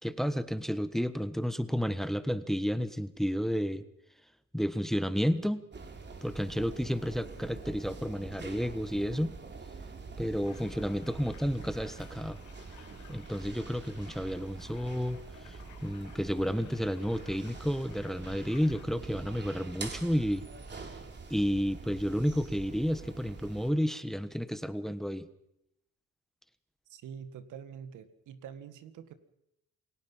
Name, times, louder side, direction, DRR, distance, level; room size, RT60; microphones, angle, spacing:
voice 1, 0.0-3.8 4.5-5.7 6.2-9.3 10.2-12.4 13.1-20.5 21.3-25.3, equal, ahead, 13 dB, 1.3 m, -31 dB
sound 1, 5.7-23.7, right 4 dB, 35° right, 3.4 m, -45 dB
sound 2, 10.4-18.8, left 8 dB, 85° left, 6.7 m, -57 dB
voice 2, 26.9-29.1, right 7 dB, 85° right, 11 dB, 2.0 m, -46 dB
28.5 x 17.0 x 5.7 m, 0.81 s
cardioid pair, 90°, 30 cm